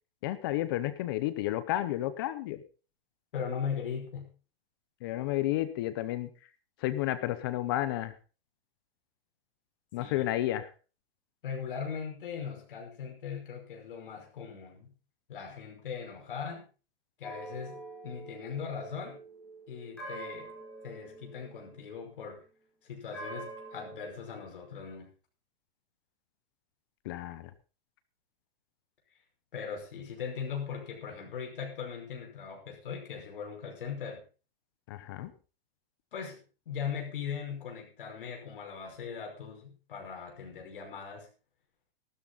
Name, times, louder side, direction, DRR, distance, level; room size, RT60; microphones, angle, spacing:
voice 1, 0.2-2.6 5.0-6.3 6.8-8.1 9.9-10.7 27.0-27.5 34.9-35.3, left 14 dB, 25° left, 13 dB, 0.7 m, -31 dB
voice 2, 3.3-4.3 10.0-10.3 11.4-15.0 15.3-16.7 17.2-19.2 19.7-20.5 20.8-22.4 22.8-25.1 29.5-34.2 36.1-36.4 36.7-41.3, left 6 dB, 60° left, 1 dB, 5.4 m, -39 dB
sound 1, 17.2-22.4 23.1-24.1, right 2 dB, 5° left, 5.5 m, -46 dB
14.0 x 12.5 x 4.0 m, 0.35 s
hypercardioid pair, 170°, 30 cm